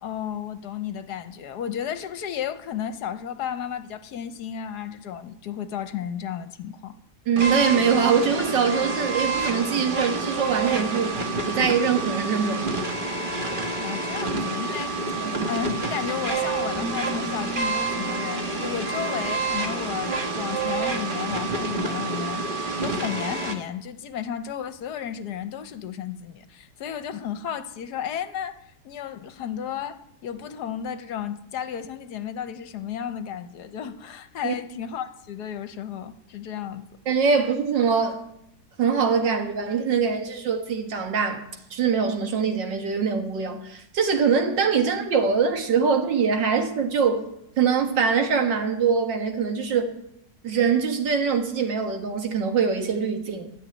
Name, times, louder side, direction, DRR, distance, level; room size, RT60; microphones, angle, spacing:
voice 1, 0.0-6.9 13.8-14.9 15.2-36.9, left 9 dB, 70° left, 1.3 m, -33 dB
voice 2, 7.3-11.2 11.5-12.8 15.2-15.5 34.4-34.5 37.1-38.2 38.8-47.2 47.6-49.9 50.4-53.5, right 6 dB, 80° right, 2.0 m, -23 dB
sound 1, 7.4-23.5, right 3 dB, 30° right, 1.3 m, -28 dB
Keyboard (musical), 16.7-20.4, left 1 dB, ahead, 4.0 m, -39 dB
13.0 x 6.6 x 9.4 m
omnidirectional pair, 1.9 m